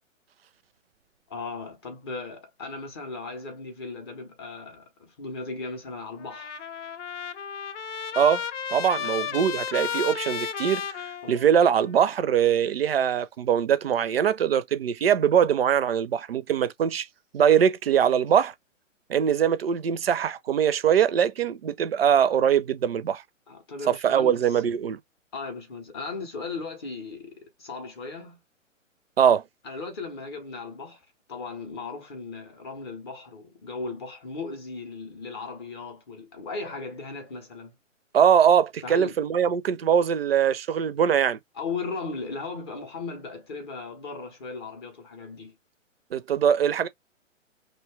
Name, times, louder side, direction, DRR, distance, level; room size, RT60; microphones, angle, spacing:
voice 1, 1.3-6.7 9.0-9.2 11.2-11.4 23.5-24.6 25.3-28.4 29.6-31.0 31.3-37.7 38.8-39.1 41.5-45.5, left 4 dB, 20° left, 0.5 m, -37 dB
Trumpet, 6.2-11.8, left 7 dB, 65° left, 0.5 m, -33 dB
voice 2, 8.7-10.8 11.3-17.1 17.3-18.5 19.1-23.2 23.9-25.0 29.2-29.4 38.1-41.4 46.1-46.9, right 8 dB, 50° right, 0.5 m, -22 dB
2.7 x 2.1 x 3.2 m
figure-of-eight pair, 125°, 38 cm